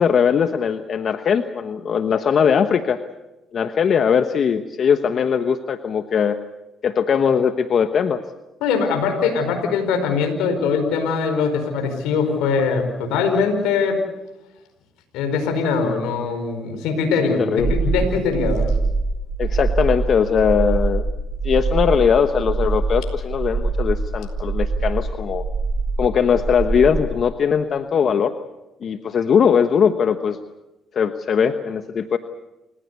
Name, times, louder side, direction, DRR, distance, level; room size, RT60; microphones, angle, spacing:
voice 1, 0.0-3.0 3.5-6.4 6.8-8.2 17.4-17.7 19.4-21.0 21.4-25.4 26.0-28.3 28.8-30.4 30.9-32.2, left 7 dB, 55° left, 9 dB, 1.1 m, -20 dB
voice 2, 8.6-14.0 15.1-18.6, left 5 dB, 85° left, 4 dB, 4.8 m, -22 dB
sound 1, 17.6-27.0, right 3 dB, 30° right, 5.4 m, -23 dB
29.0 x 16.0 x 8.3 m, 0.97 s
supercardioid pair, 70°, 0 cm